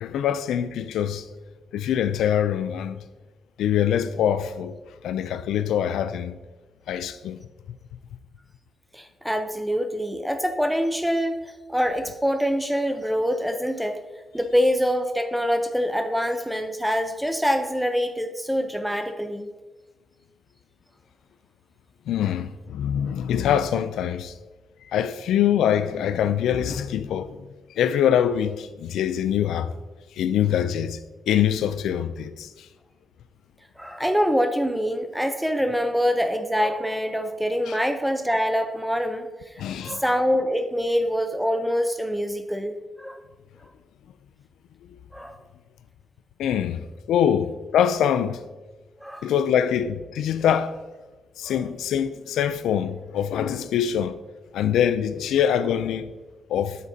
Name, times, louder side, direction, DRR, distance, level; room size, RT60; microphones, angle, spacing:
voice 1, 0.0-1.3 1.7-3.0 3.6-4.7 5.0-6.4 6.9-7.4 22.1-24.3 24.9-27.5 27.8-29.7 30.2-31.0 31.3-32.5 37.7-37.8 39.6-40.0 46.4-48.4 49.2-50.7 51.4-54.2 54.5-56.1 56.5-56.8, left 9 dB, 90° left, 0.4 m, -24 dB
voice 2, 8.9-11.4 11.7-14.0 14.3-19.5 33.8-39.3 39.8-43.2 45.1-45.3 49.0-49.3 51.5-51.6, equal, 5° right, 0.7 m, -25 dB
9.5 x 7.2 x 2.8 m
cardioid pair, 60°, 0 cm